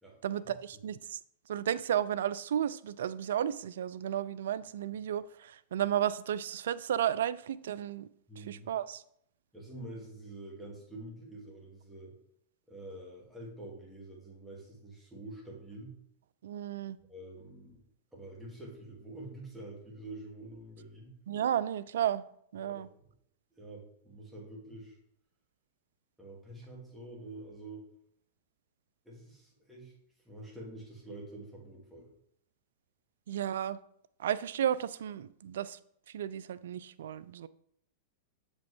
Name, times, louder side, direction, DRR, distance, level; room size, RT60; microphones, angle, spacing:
voice 1, 0.2-1.2 1.5-8.1 8.4-9.0 16.4-17.0 21.3-22.2 22.5-22.9 33.3-33.8 34.2-35.8 36.1-37.5, right 10 dB, 75° right, 0.3 m, -33 dB
voice 2, 8.3-8.7 9.5-12.2 12.7-16.0 17.1-17.8 18.1-21.1 22.6-22.8 23.6-25.0 26.2-27.9 29.0-29.9 30.2-32.1, right 2 dB, 5° right, 2.7 m, -47 dB
7.0 x 5.2 x 3.6 m
hypercardioid pair, 105°, 0 cm